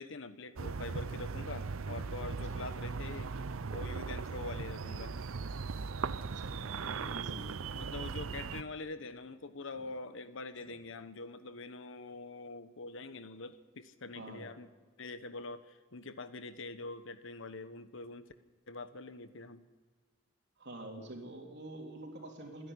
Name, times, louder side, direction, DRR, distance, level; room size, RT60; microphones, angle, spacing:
voice 1, 0.0-3.3 3.7-5.2 7.7-14.7 15.0-18.3 18.7-19.6, left 3 dB, 65° left, 11 dB, 1.2 m, -44 dB
sound 1, 0.6-8.6, right 4 dB, 85° right, 0.6 m, -38 dB
Speech synthesizer, 3.3-3.5 3.8-3.9 4.2-4.5 5.3-5.5 6.2-6.8 7.2-7.8 8.1-8.3 8.9-9.1 9.7-10.2 10.5-11.1, left 1 dB, 20° left, 7.0 m, -63 dB
voice 2, 6.2-7.6 14.1-14.5 20.6-22.7, right 1 dB, 60° right, 1 dB, 3.7 m, -46 dB
27.5 x 11.0 x 9.9 m, 1.4 s
head